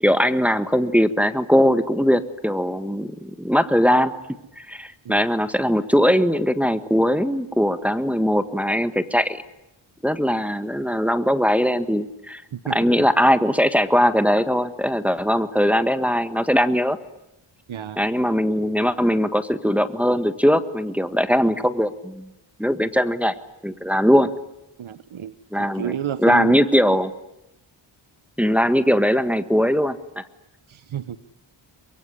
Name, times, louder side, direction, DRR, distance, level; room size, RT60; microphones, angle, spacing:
voice 1, 0.0-4.1 4.6-9.4 10.0-12.4 12.7-17.0 18.0-22.3 22.6-23.3 23.6-24.3 25.5-25.9 26.2-27.1 28.4-30.0, equal, 5° right, 10 dB, 1.5 m, -20 dB
voice 2, 12.5-13.1 17.7-18.0 24.8-26.6 30.7-31.2, right 9 dB, 75° right, 13 dB, 1.0 m, -31 dB
24.5 x 22.5 x 10.0 m, 0.89 s
wide cardioid pair, 80°, 49 cm